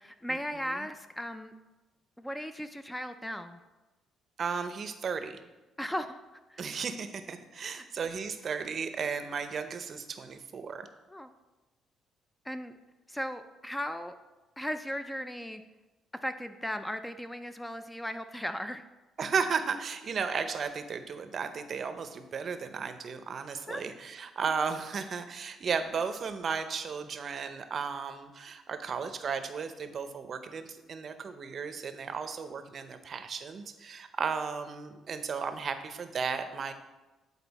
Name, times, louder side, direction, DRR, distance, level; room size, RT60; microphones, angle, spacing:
voice 1, 0.0-1.5 2.2-3.6 5.8-6.2 6.5-6.7 7.6-7.8 11.1-11.3 12.5-12.7 13.1-14.1 14.6-15.6 16.2-18.8 23.7-23.8, equal, 5° left, 9 dB, 0.4 m, -37 dB
voice 2, 4.4-5.4 6.6-10.9 19.2-36.7, right 5 dB, 45° right, 9 dB, 0.6 m, -34 dB
8.8 x 4.1 x 4.1 m, 1.1 s
cardioid pair, 105°, 0 cm